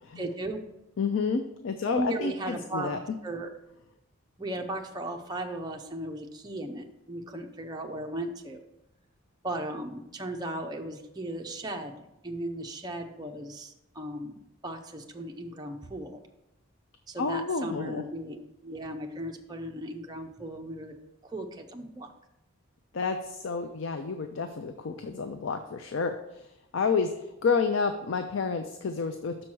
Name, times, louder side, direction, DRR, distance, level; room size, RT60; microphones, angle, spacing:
voice 1, 0.2-0.6 1.8-3.5 4.4-8.6 9.4-16.2 17.1-20.9 21.2-22.1, right 1 dB, 20° right, 2 dB, 0.6 m, -36 dB
voice 2, 1.0-3.0 17.2-18.0 22.9-29.4, left 5 dB, 60° left, 7 dB, 0.5 m, -30 dB
6.3 x 4.5 x 6.1 m, 0.88 s
head